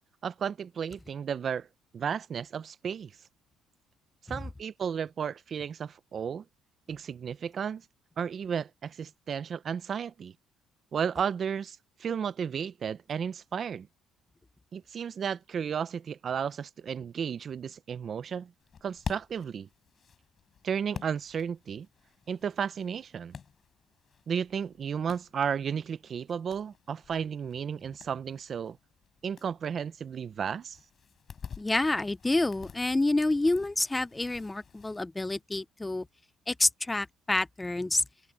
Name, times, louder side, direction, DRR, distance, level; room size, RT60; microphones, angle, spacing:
voice 1, 0.2-1.7 1.9-3.1 4.3-6.4 6.9-7.8 8.2-10.3 10.9-13.9 14.7-18.5 18.8-19.7 20.6-21.9 22.3-23.4 24.3-28.8 29.2-30.8, right 7 dB, 40° right, 0.6 m, -33 dB
sound 1, 18.6-35.0, left 7 dB, 35° left, 5.8 m, -48 dB
voice 2, 31.6-36.0 36.5-38.0, left 2 dB, 10° left, 0.4 m, -28 dB
open air
cardioid pair, 145°, 0 cm